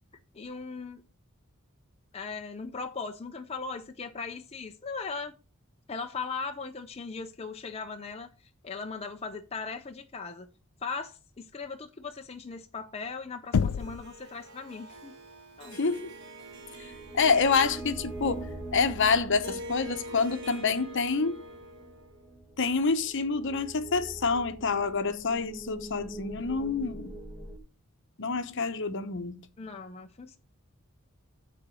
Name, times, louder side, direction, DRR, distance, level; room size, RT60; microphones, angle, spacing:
voice 1, 0.3-1.0 2.1-5.3 5.9-8.3 8.6-10.5 10.8-15.2 15.6-15.8 29.6-30.4, left 4 dB, 30° left, 0.5 m, -38 dB
Knock, 13.5-14.2, left 6 dB, 90° left, 0.4 m, -27 dB
Harp, 13.8-22.2, equal, 55° right, 1.6 m, -45 dB
voice 2, 15.7-16.1 16.8-16.9 17.1-21.4 22.6-27.1 28.2-29.4, left 4 dB, 55° left, 0.9 m, -27 dB
sound 1, 16.5-27.6, right 1 dB, 10° right, 1.6 m, -43 dB
9.7 x 4.2 x 6.3 m
head